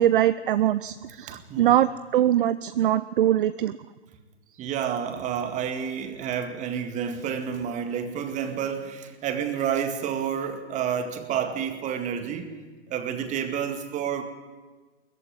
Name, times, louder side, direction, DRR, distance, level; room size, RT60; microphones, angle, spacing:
voice 1, 0.0-3.8, right 12 dB, 50° right, 14 dB, 0.6 m, -22 dB
voice 2, 4.6-12.5 12.9-14.2, right 8 dB, 20° right, 7 dB, 1.9 m, -29 dB
19.5 x 14.5 x 10.0 m, 1.3 s
figure-of-eight pair, 125°, 35 cm